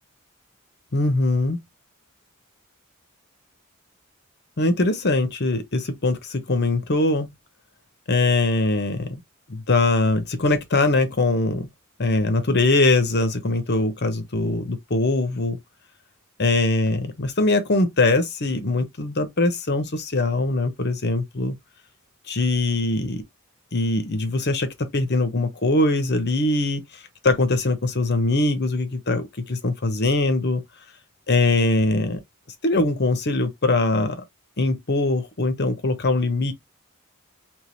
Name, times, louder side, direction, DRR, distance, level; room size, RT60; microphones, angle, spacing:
voice 1, 0.9-1.6 4.6-7.3 8.1-9.2 9.5-11.7 12.0-15.6 16.4-21.5 22.3-23.2 23.7-26.8 27.2-30.6 31.3-32.2 32.6-34.2 34.6-36.5, left 2 dB, 50° left, 1.0 m, -22 dB
3.7 x 2.9 x 3.1 m
head